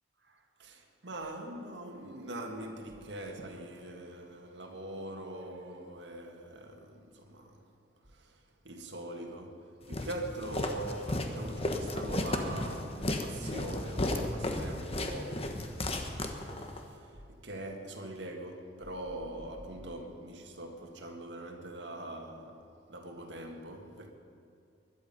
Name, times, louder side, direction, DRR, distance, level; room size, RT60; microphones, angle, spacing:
voice 1, 0.3-7.6 8.2-8.3 8.7-15.6 16.6-16.9 17.3-22.6 22.9-24.1, right 1 dB, 75° right, 1.8 m, -42 dB
Walk footsteps, 9.9-16.8, left 1 dB, 35° left, 1.2 m, -34 dB
21.0 x 11.5 x 5.5 m
head